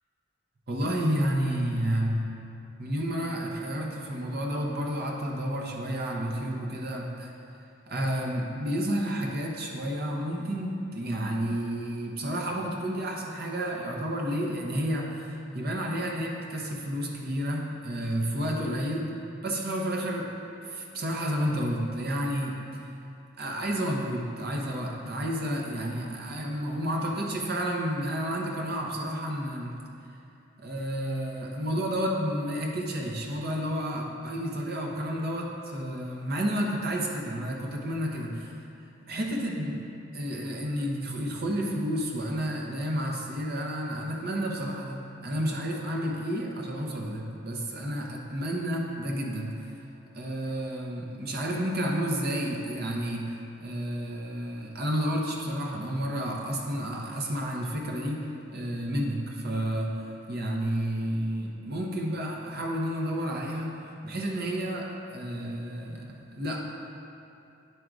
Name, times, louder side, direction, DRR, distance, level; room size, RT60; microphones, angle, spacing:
voice 1, 0.7-2.4 2.8-7.3 7.9-19.2 19.4-20.3 20.6-22.8 23.4-29.8 30.6-38.6 39.1-49.6 50.1-60.0 60.3-63.8 64.0-66.6, equal, 50° right, -1 dB, 0.9 m, -31 dB
9.4 x 3.8 x 4.7 m, 2.7 s
head